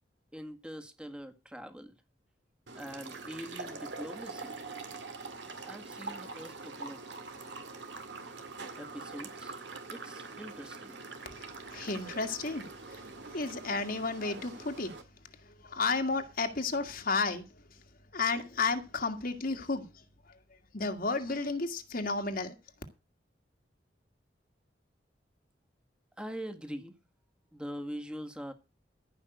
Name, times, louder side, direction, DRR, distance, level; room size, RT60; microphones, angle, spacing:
voice 1, 0.3-1.9 2.7-4.6 5.6-7.0 8.8-9.5 9.9-11.0 26.2-26.9 27.5-28.5, equal, 5° right, 1.7 m, -43 dB
sound 1, 2.7-15.0, right 3 dB, 85° right, 2.1 m, -44 dB
voice 2, 11.7-12.7 12.9-13.0 13.3-15.0 15.4-17.5 18.1-19.9 20.3-20.4 20.7-22.6, left 3 dB, 55° left, 1.8 m, -32 dB
14.5 x 5.7 x 7.8 m
head